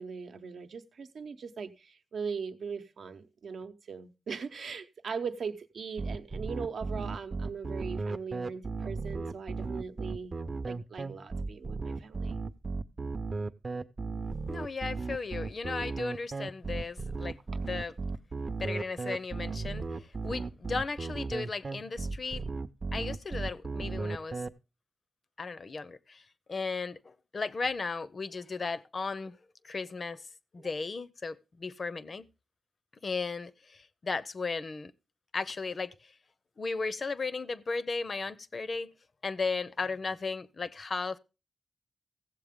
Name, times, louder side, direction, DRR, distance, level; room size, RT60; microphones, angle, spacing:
voice 1, 0.0-10.3 10.6-12.4 17.5-17.6 30.6-30.7, right 5 dB, 80° right, 0.8 m, -40 dB
sound 1, 6.0-24.5, right 3 dB, 40° right, 0.5 m, -35 dB
voice 2, 14.5-17.4 17.7-17.9 18.6-22.5 22.9-24.4 25.4-26.2 26.5-29.4 29.6-30.3 30.5-32.3 33.0-34.9 35.3-36.1 36.6-38.9 39.2-41.2, left 4 dB, 45° left, 0.5 m, -35 dB
15.5 x 7.5 x 3.6 m
wide cardioid pair, 125°, 0 cm